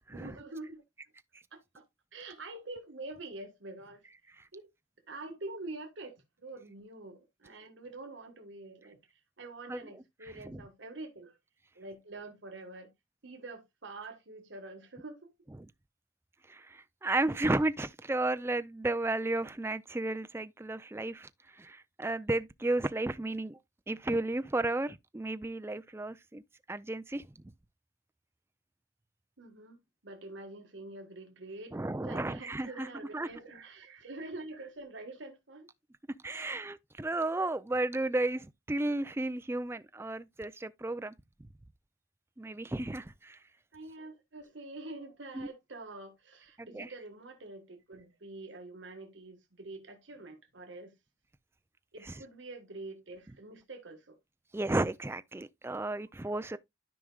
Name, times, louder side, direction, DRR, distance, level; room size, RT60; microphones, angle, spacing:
voice 1, 0.1-0.8 1.5-1.8 2.1-4.0 4.5-4.7 5.1-9.0 9.4-11.4 11.7-12.9 13.2-15.3 29.4-31.8 32.0-35.7 36.3-36.6 43.7-50.9 51.9-54.2, right 2 dB, 75° right, 1.6 m, -46 dB
voice 2, 16.5-21.3 21.6-23.6 23.9-26.4 26.7-27.3 31.7-32.9 33.1-33.3 36.2-41.1 42.4-43.4 45.3-45.5 46.6-46.9 54.5-56.6, right 2 dB, 15° right, 0.4 m, -33 dB
13.0 x 5.0 x 2.3 m
head